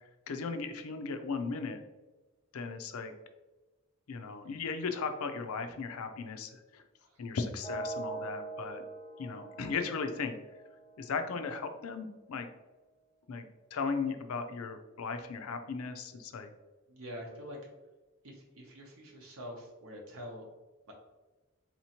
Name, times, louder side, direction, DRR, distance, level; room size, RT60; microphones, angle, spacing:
voice 1, 0.3-1.8 2.5-3.1 4.1-6.8 7.2-8.8 9.2-10.3 11.0-12.5 13.3-13.5 13.7-16.5, left 4 dB, 80° left, 8 dB, 0.5 m, -36 dB
sound 1, 7.6-11.6, right 2 dB, 10° right, 0.9 m, -43 dB
voice 2, 16.9-17.6 18.2-20.5 20.9-21.0, equal, 75° right, -1 dB, 0.7 m, -45 dB
4.1 x 2.9 x 2.8 m, 1.1 s
head